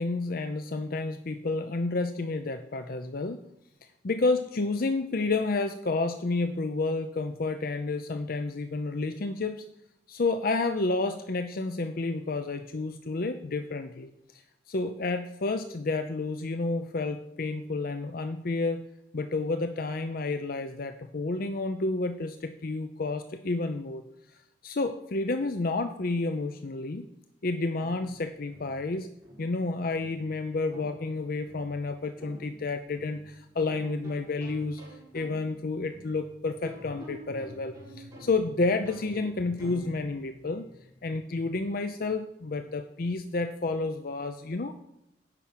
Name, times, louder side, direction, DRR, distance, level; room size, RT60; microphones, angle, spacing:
voice 1, 0.0-3.4 4.0-9.6 10.1-14.4 14.7-18.8 19.1-24.0 24.6-27.1 27.4-29.1 29.4-34.8 35.1-40.6 41.0-44.8, left 3 dB, 50° left, 8 dB, 0.6 m, -30 dB
sound 1, 27.8-41.3, equal, 15° right, 4.9 m, -50 dB
9.9 x 6.0 x 8.5 m, 0.87 s
head